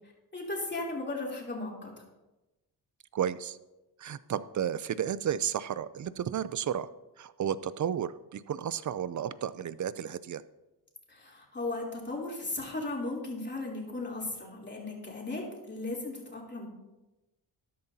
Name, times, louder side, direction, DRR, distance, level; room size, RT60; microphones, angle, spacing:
voice 1, 0.3-1.9 11.1-16.7, left 2 dB, 25° left, -2 dB, 3.3 m, -36 dB
voice 2, 3.1-3.6 4.0-6.9 7.2-10.4, right 9 dB, 45° right, 16 dB, 0.5 m, -32 dB
13.5 x 10.5 x 2.8 m, 1.0 s
cardioid pair, 80°, 41 cm